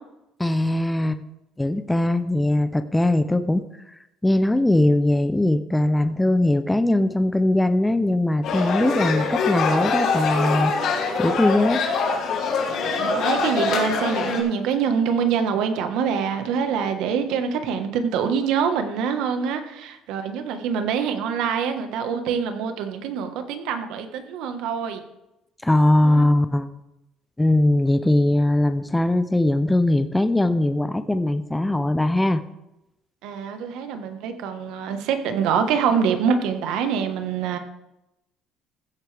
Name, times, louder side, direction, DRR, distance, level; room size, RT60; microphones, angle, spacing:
voice 1, 0.4-1.2 1.6-3.6 4.2-10.7 11.2-11.8 25.6-26.7 27.4-32.4, left 1 dB, 5° left, 10 dB, 0.5 m, -20 dB
sound 1, 8.4-14.4, left 4 dB, 60° left, 2.6 m, -24 dB
voice 2, 13.0-25.0 26.0-26.3 33.2-37.6, right 7 dB, 80° right, 7 dB, 1.3 m, -25 dB
15.5 x 8.0 x 3.4 m, 0.89 s
cardioid pair, 130°, 0 cm